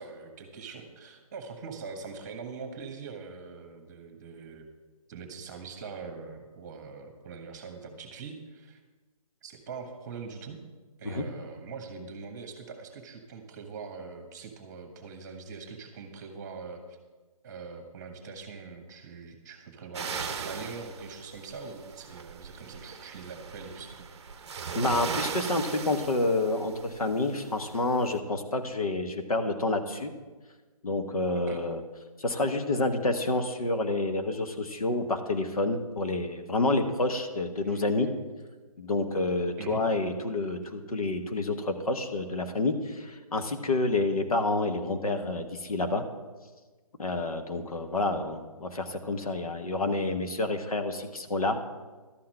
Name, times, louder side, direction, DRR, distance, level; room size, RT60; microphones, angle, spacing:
voice 1, 0.0-4.7 5.1-8.8 9.4-10.6 11.0-17.0 17.4-24.1 31.3-31.6 37.6-37.8 39.6-39.8, right 5 dB, 30° right, 6 dB, 1.4 m, -42 dB
sound 1, 19.9-28.2, right 6 dB, 45° right, 0.7 m, -39 dB
voice 2, 24.7-30.1 30.8-31.8 32.2-38.1 38.8-46.1 47.0-51.6, left 2 dB, 70° left, 6 dB, 1.4 m, -28 dB
12.0 x 5.8 x 7.7 m, 1.3 s
figure-of-eight pair, 145°, 19 cm